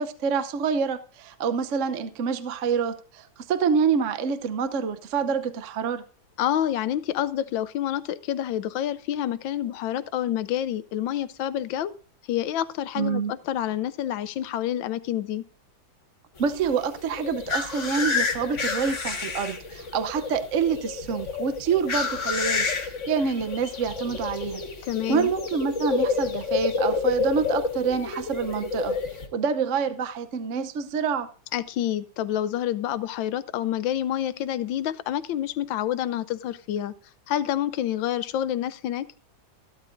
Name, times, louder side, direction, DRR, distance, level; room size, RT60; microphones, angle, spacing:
voice 1, 0.0-6.0 13.0-13.3 16.4-24.6 25.1-29.0 29.3-31.3, right 6 dB, 55° right, 0.9 m, -27 dB
voice 2, 6.4-11.9 12.3-15.4 24.9-25.3 31.5-36.9 37.3-39.1, left 11 dB, 85° left, 1.4 m, -28 dB
sound 1, 16.4-29.3, left 4 dB, 40° left, 1.8 m, -29 dB
14.5 x 12.0 x 2.6 m
omnidirectional pair, 2.1 m